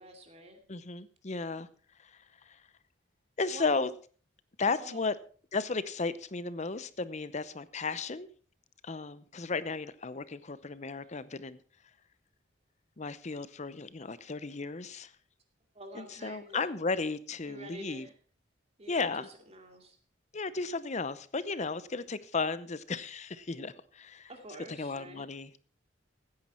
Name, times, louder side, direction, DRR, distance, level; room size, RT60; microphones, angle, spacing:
voice 1, 0.0-0.6 3.5-3.8 4.6-5.0 15.7-16.8 17.4-18.1 18.8-20.0 24.3-25.2, right 1 dB, 35° right, 4 dB, 2.5 m, -48 dB
voice 2, 0.7-1.7 2.0-2.6 3.4-3.9 4.6-5.1 5.5-8.3 8.8-11.6 13.0-15.1 15.9-18.1 18.9-19.3 20.3-24.3 24.7-25.5, left 4 dB, 35° left, 15 dB, 0.7 m, -34 dB
16.0 x 9.7 x 4.4 m, 0.41 s
head